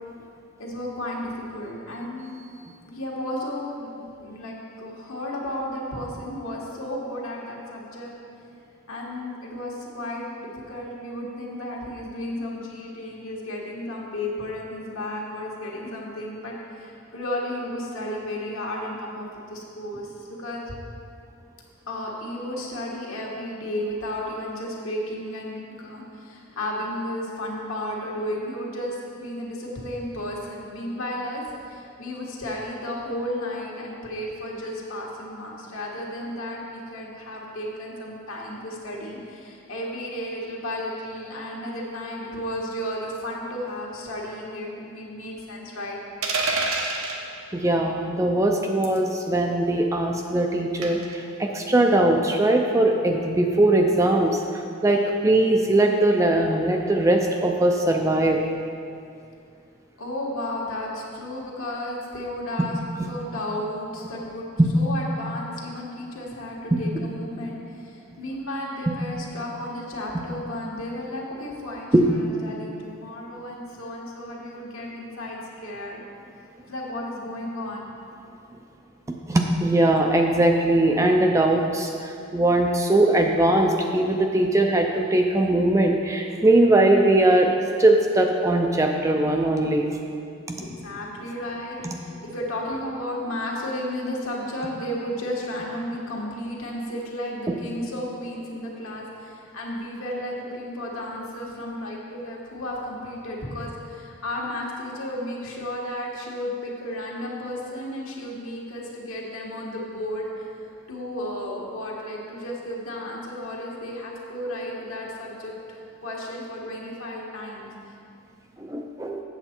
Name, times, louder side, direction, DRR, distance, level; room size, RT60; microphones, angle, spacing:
voice 1, 0.6-2.3 2.9-8.1 8.9-20.7 21.9-46.0 60.0-64.5 64.7-76.0 76.7-77.9 90.5-110.5 110.9-117.7, left 1 dB, 70° left, -3 dB, 1.5 m, -33 dB
sound 1, 46.2-47.2 48.8-49.1 50.8-51.1, right 3 dB, 75° right, 0.9 m, -26 dB
voice 2, 47.5-58.4 62.6-62.7 64.6-64.7 66.7-66.8 68.9-69.0 70.1-70.2 71.9-72.1 79.1-87.5 87.8-90.0 90.5-90.6 91.8-92.0 118.6-119.2, right 1 dB, 15° right, 2 dB, 0.4 m, -20 dB
7.9 x 7.3 x 4.4 m, 2.5 s
head